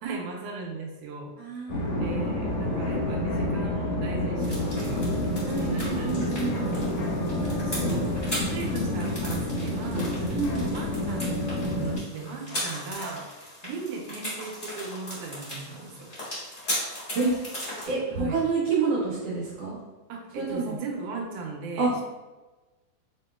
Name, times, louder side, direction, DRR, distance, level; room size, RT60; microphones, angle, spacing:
voice 1, 0.0-1.3 1.9-16.1 18.2-18.4 20.1-22.0, right 4 dB, 85° right, 1 dB, 2.2 m, -38 dB
voice 2, 1.4-2.0 5.4-6.8 10.3-10.7 17.1-17.3 17.8-19.8 20.3-20.8 21.8-21.9, right 4 dB, 60° right, -6 dB, 1.9 m, -28 dB
sound 1, 1.7-12.0, left 1 dB, 60° left, 1.4 m, -28 dB
sound 2, 2.8-3.8 6.5-7.6 9.9-11.0 12.5-13.6 16.6-17.7, left 2 dB, 80° left, 1.9 m, -46 dB
sound 3, 4.4-17.9, equal, 30° left, 0.9 m, -38 dB
5.9 x 3.5 x 2.2 m, 1.2 s
omnidirectional pair, 3.5 m